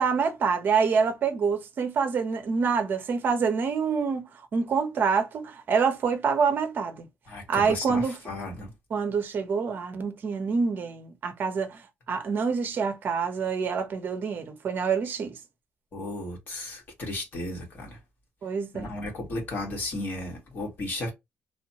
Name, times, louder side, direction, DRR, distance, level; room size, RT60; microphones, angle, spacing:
voice 1, 0.0-7.0 7.5-8.2 8.9-15.4 18.4-18.9, right 5 dB, 50° right, 0.7 m, -26 dB
voice 2, 7.3-8.7 15.9-18.0 18.7-21.1, left 1 dB, 50° left, 1.6 m, -34 dB
3.1 x 2.1 x 2.7 m
cardioid pair, 140°, 4 cm